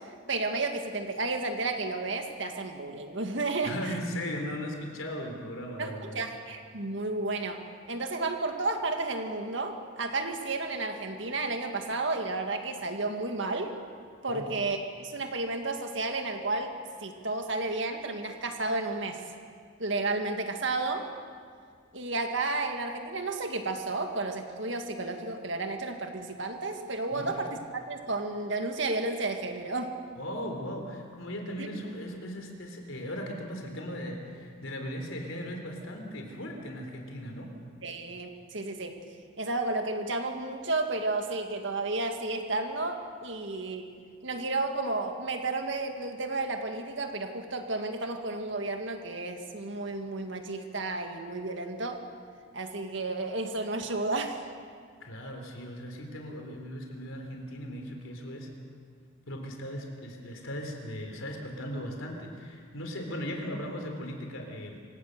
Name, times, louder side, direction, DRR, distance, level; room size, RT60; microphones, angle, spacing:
voice 1, 0.3-3.9 5.8-7.6 7.9-13.8 14.2-16.7 17.0-19.2 19.8-21.0 21.9-29.9 31.6-31.7 37.8-38.9 39.4-43.8 44.2-52.0 52.5-54.4, right 2 dB, 60° right, 5 dB, 2.0 m, -32 dB
voice 2, 3.6-6.2 14.3-14.6 27.1-27.3 30.2-37.5 55.0-58.5 59.3-64.8, equal, 85° left, 3 dB, 3.7 m, -38 dB
26.5 x 17.0 x 6.7 m, 2.1 s
head